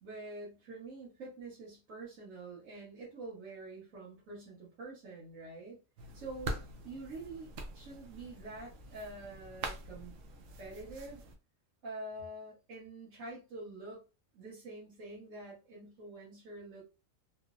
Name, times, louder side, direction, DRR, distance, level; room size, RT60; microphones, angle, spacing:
voice 1, 0.0-5.8 6.1-10.1 10.6-11.2 11.8-14.0 14.3-16.9, right 2 dB, 90° right, -6 dB, 1.4 m, -46 dB
sound 1, 6.0-11.4, right 2 dB, 70° right, 0.9 m, -44 dB
3.1 x 2.0 x 2.4 m, 0.31 s
omnidirectional pair, 1.4 m